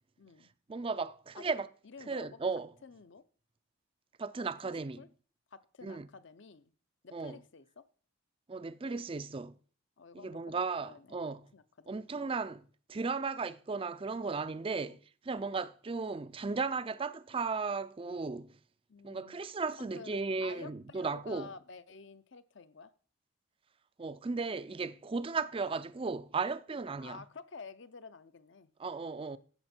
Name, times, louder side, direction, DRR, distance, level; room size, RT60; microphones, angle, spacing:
voice 1, 0.2-0.5 1.4-1.5 1.8-2.4 2.8-3.2 4.6-5.1 5.5-6.7 7.0-7.8 10.0-10.4 10.8-12.1 14.7-15.0 15.3-15.5 18.9-19.4 19.8-22.9 27.0-28.7, left 5 dB, 60° left, 0.7 m, -51 dB
voice 2, 0.7-1.7 2.1-2.7 4.2-5.0 5.8-6.1 7.1-7.4 8.5-9.5 10.2-11.4 11.9-15.0 15.3-18.5 19.0-21.5 24.0-27.2 28.8-29.4, right 4 dB, 25° right, 0.4 m, -35 dB
15.0 x 6.4 x 4.4 m
head